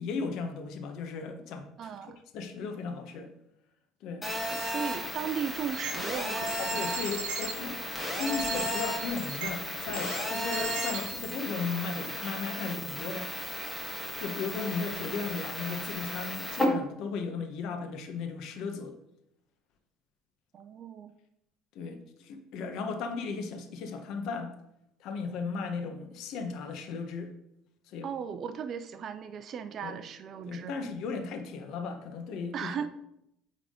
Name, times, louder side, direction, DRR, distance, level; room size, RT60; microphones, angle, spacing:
voice 1, 0.0-1.9 2.3-3.3 4.0-4.3 6.6-7.8 8.1-13.3 14.2-18.9 21.7-24.5 25.0-27.3 27.9-28.1 29.8-30.0 30.5-32.7, left 5 dB, 65° left, 6 dB, 1.0 m, -36 dB
voice 2, 1.8-2.2 4.5-6.8 20.5-21.2 28.0-30.7 32.5-32.9, right 7 dB, 45° right, 10 dB, 0.4 m, -37 dB
Telephone, 4.2-16.6, left 1 dB, 10° left, 1.6 m, -35 dB
sound 1, 5.7-5.9 6.4-7.5 8.2-9.5 9.9-11.3, right 3 dB, 90° right, 1.1 m, -36 dB
9.1 x 3.6 x 3.7 m, 0.80 s
supercardioid pair, 100°, 0 cm